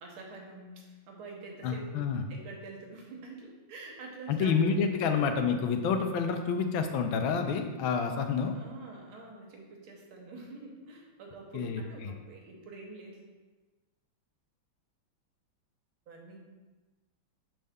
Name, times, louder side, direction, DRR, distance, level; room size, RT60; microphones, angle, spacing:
voice 1, 0.0-4.7 5.1-5.3 8.5-13.3 16.1-16.4, right 3 dB, 80° right, 0 dB, 1.8 m, -46 dB
voice 2, 1.6-2.2 4.3-8.5 11.5-11.8, left 6 dB, 75° left, 6 dB, 1.3 m, -28 dB
6.5 x 4.3 x 3.5 m, 1.3 s
omnidirectional pair, 2.3 m